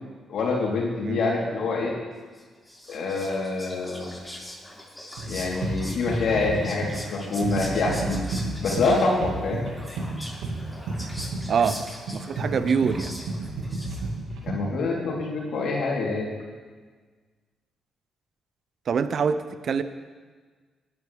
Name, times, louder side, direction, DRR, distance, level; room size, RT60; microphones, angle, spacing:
voice 1, 0.3-1.9 2.9-4.1 5.3-8.2 8.6-9.6 14.4-16.3, left 3 dB, 65° left, -3 dB, 3.4 m, -26 dB
Whispering, 2.3-14.3, left 1 dB, 5° left, 5.1 m, -41 dB
sound 1, 5.2-14.7, right 2 dB, 75° right, 1.8 m, -32 dB
voice 2, 11.5-11.8 12.1-13.1 18.9-19.8, right 6 dB, 60° right, 12 dB, 0.8 m, -24 dB
20.0 x 11.0 x 3.5 m, 1.4 s
hypercardioid pair, 40°, 0 cm